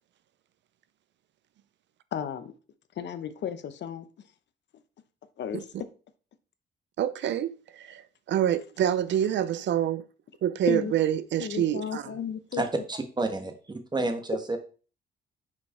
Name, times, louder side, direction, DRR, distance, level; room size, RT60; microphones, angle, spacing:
voice 1, 2.1-2.5 3.0-4.1 5.4-5.6 10.7-10.9 11.4-12.6, left 8 dB, 60° left, 0.8 m, -33 dB
voice 2, 7.0-10.0 10.4-12.2, right 10 dB, 65° right, 0.5 m, -27 dB
voice 3, 12.6-13.5 13.9-14.6, right 2 dB, 20° right, 1.3 m, -29 dB
5.8 x 4.7 x 4.3 m
cardioid pair, 90°, 20 cm